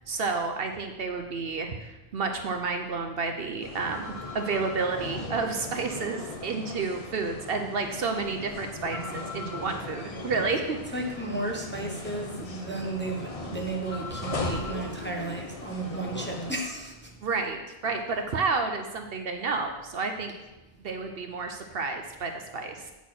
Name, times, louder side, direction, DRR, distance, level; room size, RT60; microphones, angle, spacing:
voice 1, 0.1-10.8 14.2-14.4 17.2-20.3 20.8-22.8, right 4 dB, 60° right, 5 dB, 0.9 m, -30 dB
sound 1, 3.6-16.5, left 2 dB, 35° left, 0.8 m, -38 dB
voice 2, 10.9-17.1, right 2 dB, 10° left, -1 dB, 0.9 m, -34 dB
8.2 x 4.3 x 5.9 m, 1.0 s
omnidirectional pair, 1.1 m